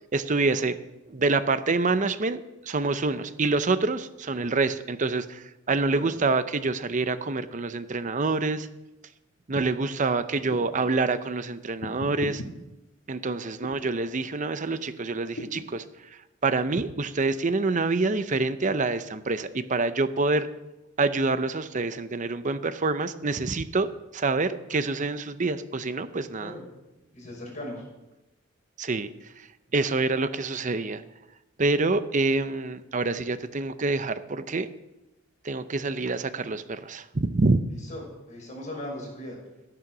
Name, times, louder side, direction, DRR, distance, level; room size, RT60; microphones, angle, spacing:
voice 1, 0.1-0.8 1.1-8.7 9.5-12.4 13.1-15.8 16.4-20.5 21.0-26.6 28.8-29.1 29.4-29.5 29.7-31.0 31.6-34.7 35.4-37.6, right 3 dB, 40° right, 12 dB, 0.7 m, -26 dB
sound 1, 10.3-10.9 11.8-12.5 13.6-13.9 15.4-15.7, left 1 dB, 75° left, 1.7 m, -37 dB
voice 2, 27.1-27.8 37.7-38.0 38.3-39.4, left 1 dB, 40° left, -2 dB, 6.1 m, -38 dB
13.5 x 11.0 x 6.1 m, 0.97 s
head